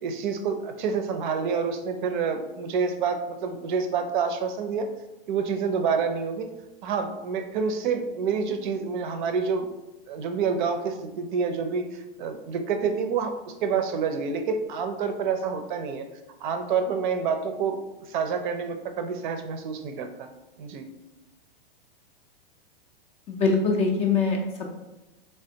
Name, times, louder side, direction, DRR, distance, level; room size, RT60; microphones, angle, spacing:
voice 1, 0.0-4.9 5.3-6.5 6.8-9.7 10.1-16.1 16.4-17.8 18.1-20.3 20.6-20.9, right 5 dB, 55° right, 7 dB, 0.5 m, -28 dB
voice 2, 23.3-24.7, left 4 dB, 20° left, 1 dB, 0.4 m, -23 dB
3.4 x 3.3 x 2.7 m, 1.0 s
hypercardioid pair, 130°, 30 cm